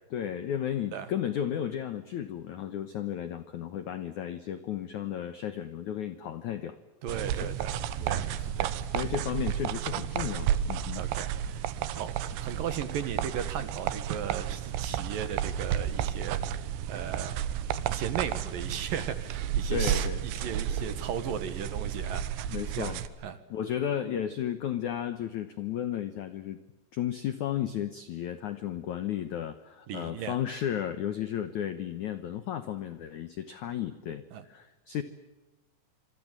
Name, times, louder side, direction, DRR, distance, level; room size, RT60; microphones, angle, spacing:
voice 1, 0.1-6.8 8.0-8.5 8.9-11.0 19.7-20.2 22.5-23.0 23.5-26.6 26.9-35.0, left 10 dB, 85° left, 11 dB, 1.6 m, -34 dB
voice 2, 7.0-8.3 8.6-8.8 11.0-17.3 17.8-23.0 23.2-23.4 29.9-30.4 34.3-34.4, right 8 dB, 65° right, 12 dB, 2.6 m, -37 dB
sound 1, 7.1-23.1, right 10 dB, 80° right, 3.4 m, -32 dB
26.5 x 25.0 x 7.5 m, 1.1 s
omnidirectional pair, 5.3 m